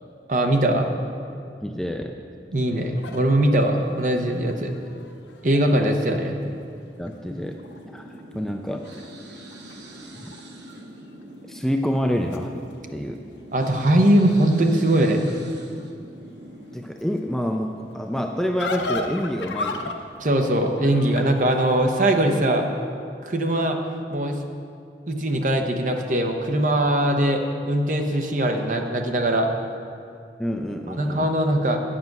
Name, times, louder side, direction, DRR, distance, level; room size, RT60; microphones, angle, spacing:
voice 1, 0.3-0.9 2.5-4.7 5.4-6.3 13.5-15.3 20.2-22.7 23.2-23.8 24.1-24.4 25.1-29.5 30.9-31.8, right 1 dB, 45° right, 3 dB, 0.9 m, -21 dB
voice 2, 1.6-2.2 7.0-7.6 7.9-8.1 8.3-8.8 10.2-10.3 11.5-12.5 12.9-13.2 16.7-19.9 30.4-31.3, equal, ahead, 3 dB, 0.3 m, -27 dB
sound 1, 3.0-6.2 6.7-6.8 7.0-7.8 8.1-10.4 10.7-11.2 11.9-21.8, left 2 dB, 85° left, 0.7 m, -37 dB
sound 2, 7.2-16.9, right 1 dB, 85° right, 1.2 m, -43 dB
9.3 x 7.6 x 6.0 m, 2.4 s
head